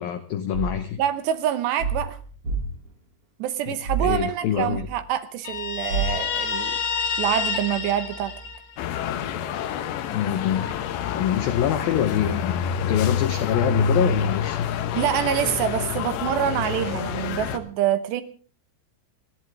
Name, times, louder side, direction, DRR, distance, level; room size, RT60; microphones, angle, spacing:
voice 1, 0.0-1.0 3.7-4.9 10.1-10.7 11.1-14.7, left 10 dB, 85° left, 10 dB, 2.0 m, -25 dB
sound 1, 0.5-0.9 1.8-2.9 3.8-5.0 5.9-6.3, right 4 dB, 35° right, 3.2 m, -28 dB
voice 2, 1.0-2.2 3.4-6.8 7.2-8.3 14.9-18.2, right 11 dB, 75° right, 12 dB, 2.8 m, -26 dB
Guitar, 5.4-9.0, left 5 dB, 50° left, 3.9 m, -28 dB
sound 2, 8.8-17.6, left 7 dB, 70° left, 3.2 m, -27 dB
29.5 x 11.0 x 3.5 m, 0.41 s
omnidirectional pair, 5.7 m